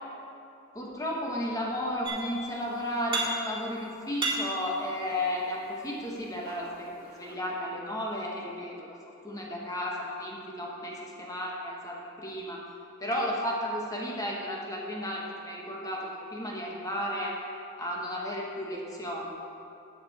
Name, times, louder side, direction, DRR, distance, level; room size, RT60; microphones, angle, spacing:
voice 1, 0.7-6.9 7.2-9.0 9.2-12.6 13.0-17.3 17.8-19.3, left 1 dB, 15° left, -3 dB, 1.4 m, -33 dB
sound 1, 2.0-2.6 2.8-3.7 4.0-5.6 6.2-7.3, right 3 dB, 25° right, 1.9 m, -34 dB
10.0 x 8.2 x 4.3 m, 2.6 s
head